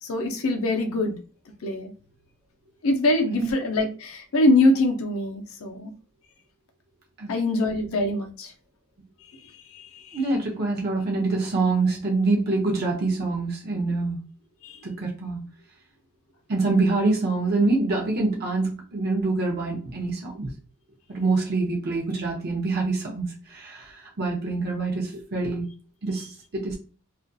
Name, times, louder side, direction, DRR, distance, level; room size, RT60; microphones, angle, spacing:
voice 1, 0.0-1.2 1.6-1.9 2.8-5.9 7.3-8.5 9.7-10.2 14.6-14.8, left 2 dB, 70° left, 5 dB, 0.5 m, -23 dB
voice 2, 10.1-14.2 14.8-15.4 16.5-20.5 21.1-25.7 26.0-26.8, right 3 dB, 45° right, -1 dB, 0.5 m, -25 dB
2.5 x 2.4 x 2.2 m, 0.36 s
head